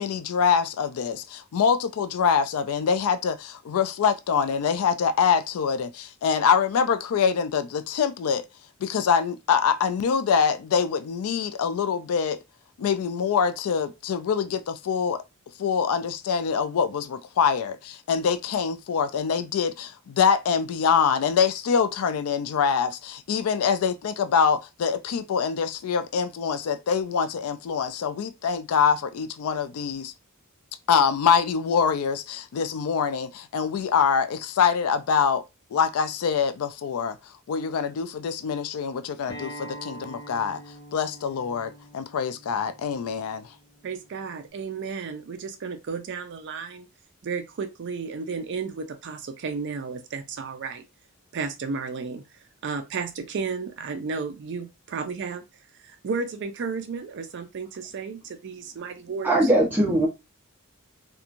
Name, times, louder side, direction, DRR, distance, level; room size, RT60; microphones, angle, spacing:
voice 1, 0.0-8.4 8.8-12.4 12.8-15.2 15.6-30.1 30.9-35.4 35.7-40.6 40.9-43.5, left 6 dB, 75° left, 0.4 m, -24 dB
Acoustic guitar, 39.3-44.5, equal, 20° left, 0.8 m, -44 dB
voice 2, 43.8-46.9 47.2-50.8 51.3-52.2 52.6-55.4 55.8-59.5, right 5 dB, 55° right, 0.4 m, -33 dB
voice 3, 59.2-60.1, right 1 dB, 10° right, 0.9 m, -20 dB
2.9 x 2.2 x 2.5 m
head